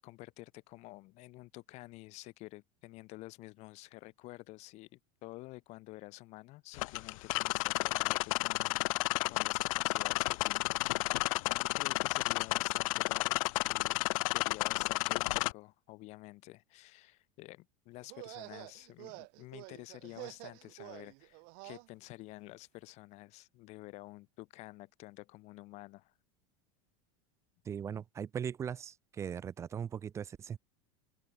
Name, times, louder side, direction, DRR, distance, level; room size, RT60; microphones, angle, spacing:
voice 1, 0.0-8.9 9.3-14.0 14.3-26.1, left 20 dB, 40° left, 2.4 m, -50 dB
sound 1, 6.7-15.5, left 22 dB, 70° left, 0.5 m, -32 dB
sound 2, 18.0-21.9, right 39 dB, 45° right, 1.1 m, -49 dB
voice 2, 27.6-30.6, right 8 dB, 15° right, 0.7 m, -39 dB
open air
supercardioid pair, 175°, 18 cm